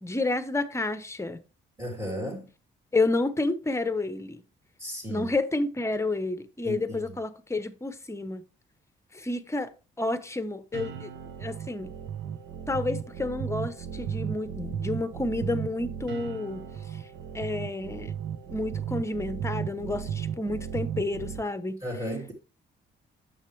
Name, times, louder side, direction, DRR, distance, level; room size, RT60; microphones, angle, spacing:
voice 1, 0.0-1.4 2.9-4.4 5.1-8.4 9.1-9.7 10.0-11.1 11.4-11.9 12.7-16.7 17.3-18.1 18.5-21.8, left 2 dB, 15° left, 0.9 m, -30 dB
voice 2, 1.8-2.5 4.8-5.3 6.6-7.2 21.8-22.3, equal, 15° right, 3.0 m, -35 dB
sound 1, 10.7-21.4, right 8 dB, 65° right, 0.9 m, -35 dB
8.9 x 7.0 x 3.3 m
cardioid pair, 90°, 20 cm